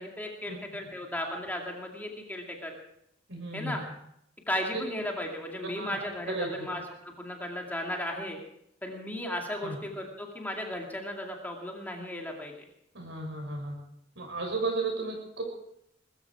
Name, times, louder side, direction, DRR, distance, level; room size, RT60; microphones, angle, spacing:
voice 1, 0.0-2.7 3.5-3.8 4.5-8.4 8.8-12.7, left 1 dB, 10° left, 1 dB, 2.4 m, -35 dB
voice 2, 3.3-3.8 4.7-4.8 5.8-5.9 6.3-6.5 9.6-9.8 12.9-13.8 14.2-15.4, right 3 dB, 70° right, 2 dB, 6.8 m, -33 dB
20.5 x 14.5 x 4.7 m, 0.74 s
head